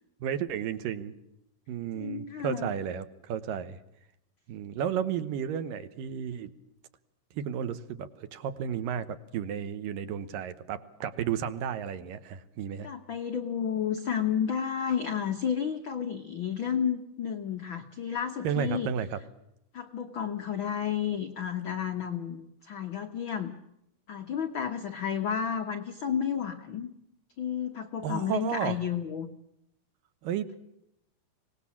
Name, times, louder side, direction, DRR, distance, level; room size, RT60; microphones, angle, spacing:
voice 1, 0.2-1.1 1.7-3.8 4.5-6.5 7.4-12.9 18.4-19.2 28.0-28.8 30.2-30.5, right 8 dB, 75° right, 11 dB, 2.9 m, -33 dB
voice 2, 1.9-2.7 12.8-18.9 19.7-23.5 24.1-26.9 27.4-29.3, left 8 dB, 90° left, 6 dB, 1.0 m, -31 dB
24.5 x 19.0 x 7.3 m, 0.81 s
omnidirectional pair, 4.0 m